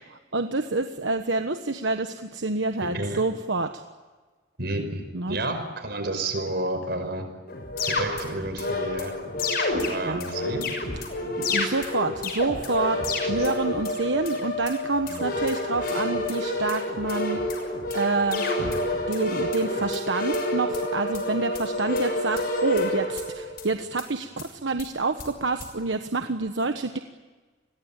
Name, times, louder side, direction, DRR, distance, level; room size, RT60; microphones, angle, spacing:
voice 1, 0.3-3.8 5.1-5.4 10.0-10.2 11.4-17.5 17.9-18.4 19.1-27.0, right 3 dB, 80° right, 7 dB, 1.3 m, -27 dB
voice 2, 2.8-3.2 4.6-7.3 7.8-9.1 9.9-10.7 13.4-13.5 15.1-15.2 18.6-18.7, right 1 dB, 60° right, 8 dB, 5.2 m, -31 dB
sound 1, 7.5-23.7 24.0-24.1 24.4-24.5 24.8-24.9 25.2-25.3 25.6-25.7, left 1 dB, 55° left, 6.3 m, -28 dB
29.0 x 22.0 x 9.1 m, 1.3 s
head